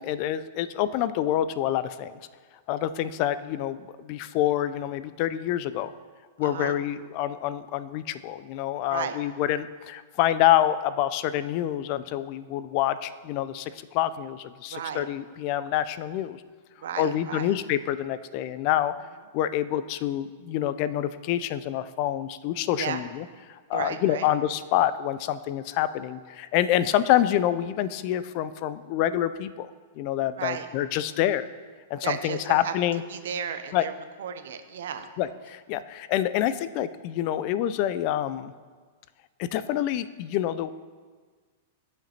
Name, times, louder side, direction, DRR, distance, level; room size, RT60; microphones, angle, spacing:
voice 1, 0.0-2.2 2.7-5.9 6.4-16.4 17.0-18.9 19.3-31.5 31.9-33.0 33.7-33.8 35.2-38.5 39.4-40.7, left 12 dB, 50° left, 14 dB, 0.3 m, -27 dB
voice 2, 6.4-6.8 8.9-9.2 14.7-15.1 16.8-17.5 22.8-23.0 23.7-24.3 30.4-30.7 32.0-32.7 33.1-35.1, right 8 dB, 70° right, 8 dB, 0.7 m, -34 dB
11.5 x 5.0 x 2.8 m, 1.5 s
hypercardioid pair, 110°, 0 cm